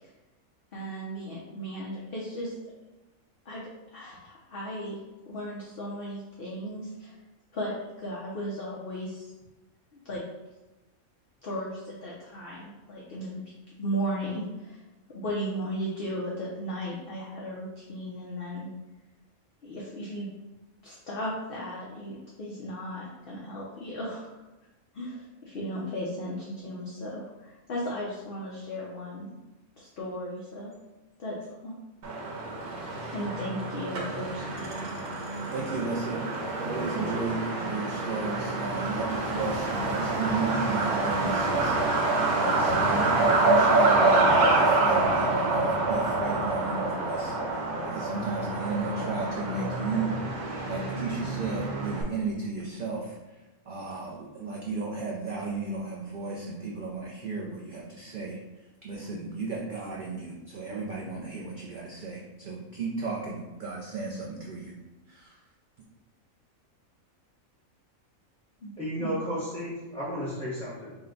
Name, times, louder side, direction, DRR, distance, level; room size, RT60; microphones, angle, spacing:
voice 1, 0.7-2.5 3.5-3.6 3.9-5.0 5.3-7.1 7.5-9.2 10.0-10.2 11.4-13.4 13.8-14.8 15.1-18.7 19.6-20.3 20.8-24.4 24.9-29.3 29.8-30.7 31.2-31.4 31.6-31.7 33.1-34.7 68.6-68.7 69.0-69.1, equal, 50° left, -5 dB, 0.7 m, -35 dB
Truck, 32.0-52.0, right 2 dB, 85° right, 1.3 m, -27 dB
voice 2, 35.5-41.8 42.4-50.1 50.7-53.1 53.7-58.4 58.8-64.7 65.1-65.3, right 3 dB, 65° right, -3 dB, 0.5 m, -34 dB
voice 3, 68.8-70.9, equal, 5° left, -10 dB, 0.6 m, -33 dB
5.0 x 2.2 x 3.8 m, 1.1 s
omnidirectional pair, 1.5 m